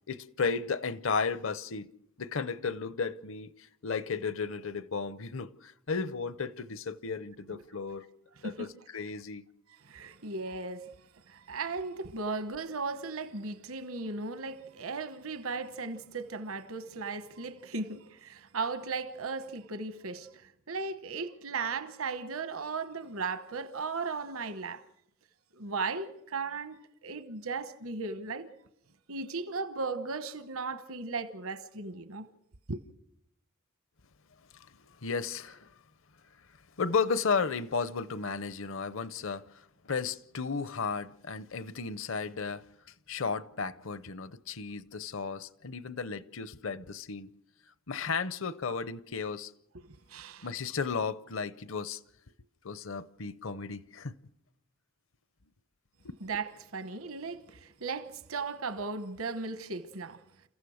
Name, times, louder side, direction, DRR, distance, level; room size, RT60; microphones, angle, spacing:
voice 1, 0.1-1.9 2.2-8.1 8.4-9.4 34.5-35.7 36.8-42.6 43.1-47.3 47.9-49.5 50.4-52.0 52.6-54.2 56.0-56.2, left 5 dB, 60° left, 0.7 m, -34 dB
voice 2, 9.7-10.9 11.3-24.8 25.5-28.5 29.1-32.3 32.7-32.8 49.7-50.5 56.2-60.2, right 4 dB, 70° right, 1.1 m, -36 dB
29.0 x 15.0 x 6.4 m
head